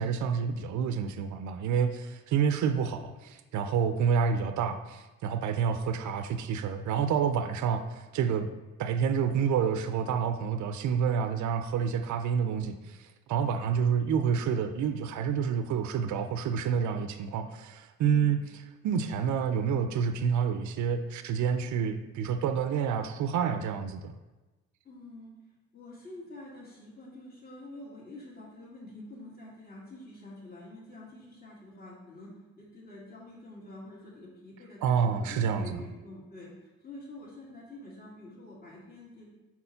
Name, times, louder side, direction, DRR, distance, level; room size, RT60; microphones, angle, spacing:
voice 1, 0.0-8.5 8.8-18.4 18.8-24.1 34.8-35.8, right 7 dB, 70° right, 8 dB, 0.5 m, -28 dB
voice 2, 18.0-18.4 24.8-25.3 25.7-39.3, left 1 dB, 30° left, -4 dB, 1.9 m, -47 dB
4.3 x 4.2 x 5.6 m, 1.1 s
cardioid pair, 90°, 30 cm